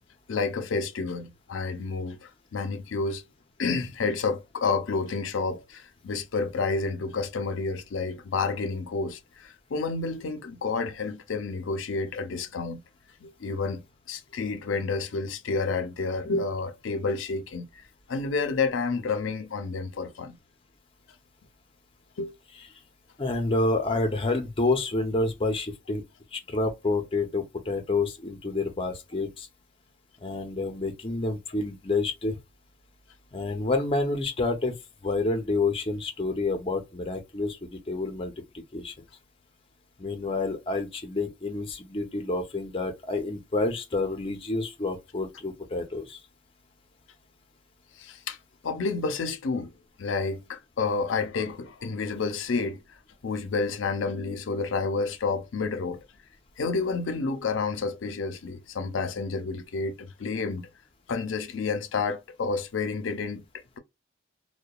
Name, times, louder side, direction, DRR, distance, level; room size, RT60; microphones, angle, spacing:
voice 1, 0.3-3.2 3.6-12.8 13.2-13.8 14.1-20.4 22.2-22.3 48.0-48.4 48.6-49.7 50.0-52.8 53.2-56.0 56.6-60.7 61.1-63.4, left 4 dB, 85° left, 0.5 m, -30 dB
voice 2, 23.2-26.0 26.3-29.5 30.2-32.4 33.3-34.7 35.0-38.3 38.7-38.9 40.0-46.2, left 2 dB, 30° left, 0.6 m, -28 dB
2.9 x 2.1 x 2.2 m
head